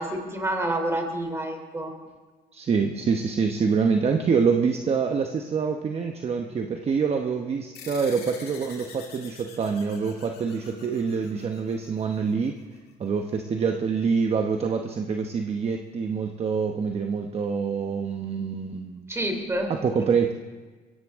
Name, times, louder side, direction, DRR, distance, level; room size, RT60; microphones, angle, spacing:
voice 1, 0.0-1.9 19.1-19.7, right 1 dB, 15° right, 4 dB, 3.1 m, -28 dB
voice 2, 2.5-12.6 13.0-19.0 19.7-20.3, right 5 dB, 35° right, 4 dB, 1.0 m, -26 dB
sound 1, 7.7-12.6, left 6 dB, 75° left, 5.7 m, -46 dB
23.5 x 16.0 x 3.6 m, 1.4 s
cardioid pair, 110°, 17 cm